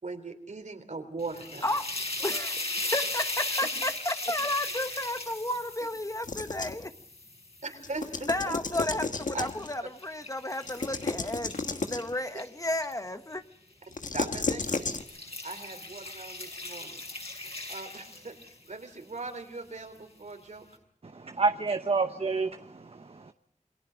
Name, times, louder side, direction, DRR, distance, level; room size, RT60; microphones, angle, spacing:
voice 1, 0.0-1.7 7.6-8.9 9.3-9.5 14.1-15.1 15.4-17.0 17.7-20.7, right 3 dB, 70° right, 3.5 m, -40 dB
sound 1, 1.2-8.4 9.0-12.9 13.8-14.1 14.5-18.7, left 2 dB, 50° left, 7.2 m, -37 dB
voice 2, 2.2-6.9 8.2-13.4, left 1 dB, 25° left, 1.2 m, -32 dB
sound 2, 6.2-6.9 7.8-9.7 10.6-12.1 13.9-15.0, left 3 dB, 85° left, 1.4 m, -33 dB
voice 3, 21.1-23.3, right 4 dB, 50° right, 0.9 m, -29 dB
28.0 x 22.5 x 5.1 m
wide cardioid pair, 70°, 13 cm